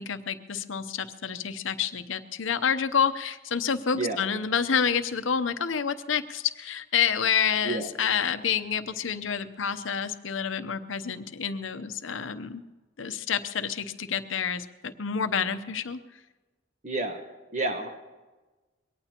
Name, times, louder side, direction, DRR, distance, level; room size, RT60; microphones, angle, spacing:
voice 1, 0.0-12.6 13.0-16.0, left 7 dB, 85° left, 10 dB, 0.8 m, -28 dB
voice 2, 16.8-17.2 17.5-17.9, right 3 dB, 35° right, 4 dB, 1.2 m, -29 dB
22.5 x 18.0 x 2.9 m, 1.2 s
head